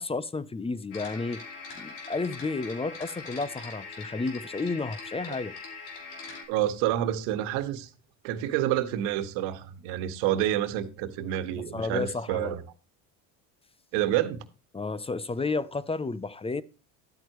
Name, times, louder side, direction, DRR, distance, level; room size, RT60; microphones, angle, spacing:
voice 1, 0.0-1.4 1.7-5.5 11.7-12.6 14.7-16.6, left 3 dB, 15° left, 0.6 m, -31 dB
sound 1, 0.9-6.4, left 4 dB, 80° left, 4.6 m, -42 dB
voice 2, 6.5-7.9 8.2-12.6 13.9-14.4, right 12 dB, 75° right, 1.5 m, -28 dB
12.0 x 9.0 x 3.0 m
supercardioid pair, 85°, 44 cm